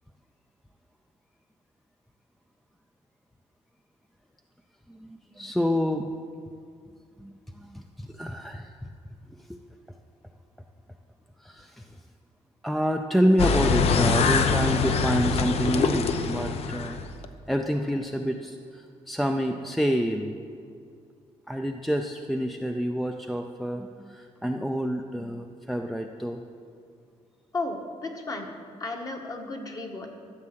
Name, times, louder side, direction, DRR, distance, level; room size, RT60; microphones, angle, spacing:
voice 1, 4.9-6.1 7.2-8.7 9.5-9.6 11.4-11.9 12.6-17.0 17.5-20.4 21.5-26.4, equal, ahead, 4 dB, 0.4 m, -28 dB
sound 1, 13.4-17.3, left 5 dB, 60° left, 0.8 m, -24 dB
voice 2, 27.5-28.5 28.8-30.1, left 2 dB, 30° left, 3 dB, 1.4 m, -33 dB
13.0 x 7.6 x 7.6 m, 2.3 s
cardioid pair, 150°, 12 cm